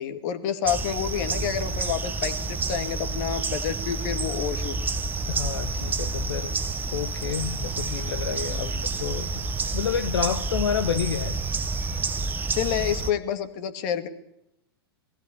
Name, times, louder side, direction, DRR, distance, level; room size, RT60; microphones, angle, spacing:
voice 1, 0.0-4.7 8.5-8.9 12.5-14.1, left 9 dB, 45° left, 2.3 m, -29 dB
sound 1, 0.7-13.1, right 3 dB, 15° right, 1.1 m, -29 dB
voice 2, 5.3-6.6 6.9-9.4 9.7-11.4, left 8 dB, 70° left, 1.0 m, -29 dB
21.0 x 16.5 x 9.8 m
figure-of-eight pair, 105°, 13 cm